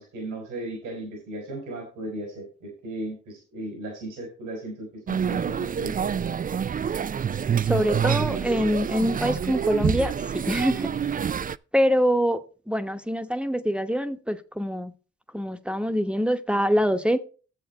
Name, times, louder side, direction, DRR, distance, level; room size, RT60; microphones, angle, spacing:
voice 1, 0.0-6.3, right 1 dB, 90° right, 1 dB, 3.6 m, -36 dB
sound 1, 5.1-11.6, right 7 dB, 30° right, 0.4 m, -27 dB
voice 2, 7.7-10.1 10.5-10.9 11.7-14.9 15.3-17.2, equal, 5° right, 8 dB, 1.1 m, -24 dB
10.5 x 7.6 x 4.1 m, 0.38 s
supercardioid pair, 50°, 30 cm